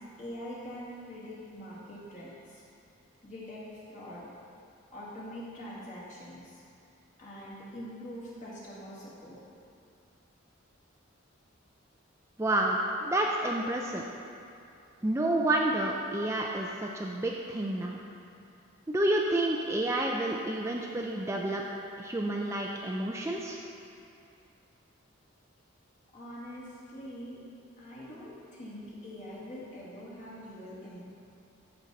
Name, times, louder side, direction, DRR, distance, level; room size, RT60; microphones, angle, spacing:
voice 1, 0.2-2.6 3.2-3.6 3.9-4.3 4.9-6.6 7.2-9.4 26.1-27.4 27.8-31.0, equal, 40° left, -7 dB, 2.1 m, -44 dB
voice 2, 12.4-14.0 15.0-18.0 18.9-21.6 22.0-23.6, right 1 dB, 15° right, -1 dB, 0.4 m, -29 dB
13.5 x 5.5 x 4.0 m, 2.6 s
head